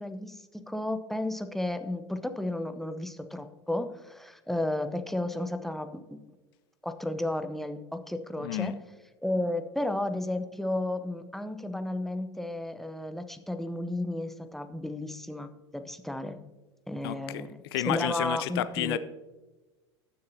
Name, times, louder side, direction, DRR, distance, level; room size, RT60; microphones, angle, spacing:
voice 1, 0.0-6.2 6.8-8.7 9.2-16.4 16.9-17.5 17.7-19.0, left 1 dB, ahead, 8 dB, 0.8 m, -33 dB
voice 2, 8.4-8.8 17.0-17.2 17.7-19.0, left 13 dB, 60° left, 15 dB, 0.6 m, -30 dB
19.5 x 6.6 x 2.8 m, 1.2 s
hypercardioid pair, 85°, 14 cm